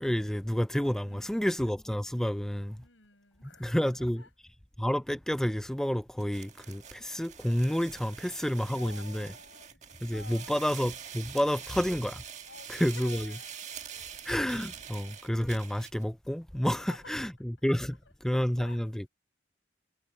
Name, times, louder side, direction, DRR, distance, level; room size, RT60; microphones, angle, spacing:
voice 1, 0.0-2.8 3.6-4.2 4.8-9.3 10.0-12.2 12.7-13.3 14.3-19.1, equal, 5° left, 0.3 m, -30 dB
voice 2, 1.0-1.5 2.8-4.3 8.1-9.8 10.1-10.7 11.3-11.5 12.5-13.6 13.9-14.2 14.8-14.9 16.6-17.1 18.3-18.9, left 3 dB, 85° left, 7.5 m, -52 dB
sound 1, 6.2-16.0, right 8 dB, 40° right, 1.6 m, -45 dB
head